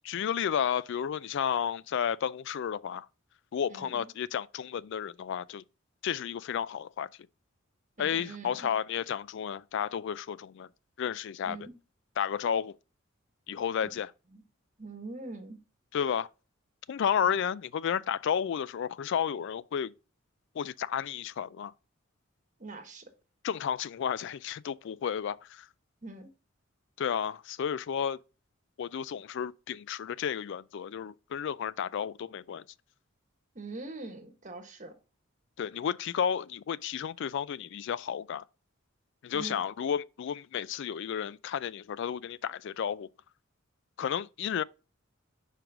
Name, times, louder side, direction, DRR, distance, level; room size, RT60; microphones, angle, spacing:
voice 1, 0.0-3.1 3.5-5.6 6.0-7.1 8.0-10.7 11.0-11.6 12.2-12.7 13.5-14.1 15.9-16.3 16.9-19.9 20.6-21.7 23.4-25.7 27.0-28.2 28.8-32.6 35.6-38.4 39.2-43.1 44.0-44.6, left 8 dB, 60° left, 0.3 m, -32 dB
voice 2, 3.7-4.1 8.0-8.7 11.4-11.7 14.3-14.4 14.8-15.6 17.2-17.4 22.6-23.0 26.0-26.3 33.5-34.9 39.3-39.6, right 2 dB, 40° right, 1.3 m, -43 dB
5.1 x 4.6 x 5.9 m
head